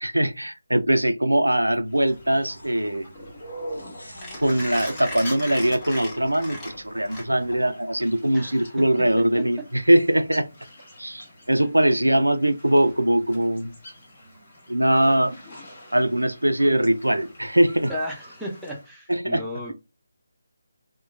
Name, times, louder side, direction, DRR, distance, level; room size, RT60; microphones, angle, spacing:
voice 1, 0.0-3.1 4.4-10.5 11.0-13.7 14.7-15.4 15.9-17.9 19.1-19.4, right 1 dB, 90° right, 0.3 m, -21 dB
Mechanisms, 1.6-7.7, left 1 dB, 15° left, 0.9 m, -37 dB
sound 1, 1.8-18.9, equal, 50° left, 1.7 m, -45 dB
sound 2, 2.5-2.7 3.7-5.1 6.9-7.0 7.6-7.7 9.9-10.1, left 1 dB, 75° left, 0.9 m, -46 dB
voice 2, 8.3-8.7 17.9-19.7, left 1 dB, 5° right, 0.6 m, -34 dB
2.9 x 2.2 x 2.4 m
figure-of-eight pair, 155°, 0 cm